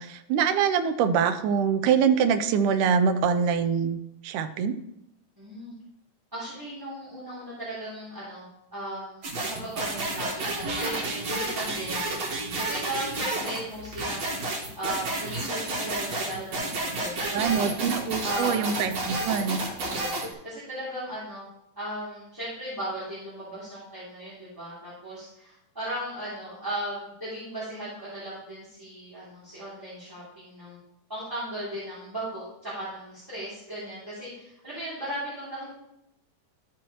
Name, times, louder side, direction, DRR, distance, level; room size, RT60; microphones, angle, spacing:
voice 1, 0.0-4.8 17.3-19.6, right 7 dB, 85° right, 8 dB, 2.1 m, -24 dB
voice 2, 5.4-5.7 6.3-12.1 12.6-17.7 18.2-18.6 19.8-21.5 21.8-30.8 31.1-35.7, right 1 dB, 5° right, -11 dB, 2.5 m, -37 dB
sound 1, 9.2-20.3, right 2 dB, 55° right, 3.0 m, -31 dB
12.5 x 6.1 x 3.0 m, 0.82 s
omnidirectional pair, 3.6 m